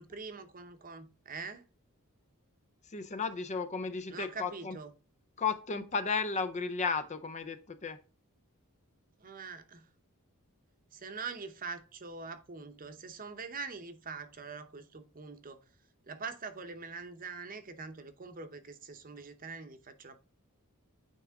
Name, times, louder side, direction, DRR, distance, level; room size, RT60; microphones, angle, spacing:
voice 1, 0.0-1.7 4.1-4.9 9.2-9.9 10.9-15.6 16.1-20.2, right 4 dB, 40° right, 0.8 m, -44 dB
voice 2, 2.9-4.7 5.4-8.0, left 5 dB, 30° left, 0.6 m, -34 dB
9.3 x 3.5 x 3.5 m
head